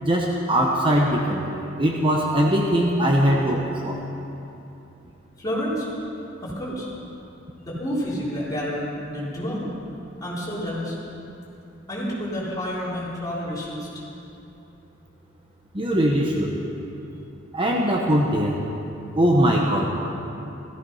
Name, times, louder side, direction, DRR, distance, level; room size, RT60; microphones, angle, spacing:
voice 1, 0.0-4.0 15.7-16.6 17.5-18.6 19.2-19.9, equal, 30° right, -1 dB, 1.1 m, -21 dB
voice 2, 5.4-5.9 6.4-6.9 7.6-9.7 10.2-11.0 11.9-13.9, equal, 20° left, -8 dB, 4.2 m, -29 dB
16.0 x 15.0 x 5.6 m, 2.8 s
head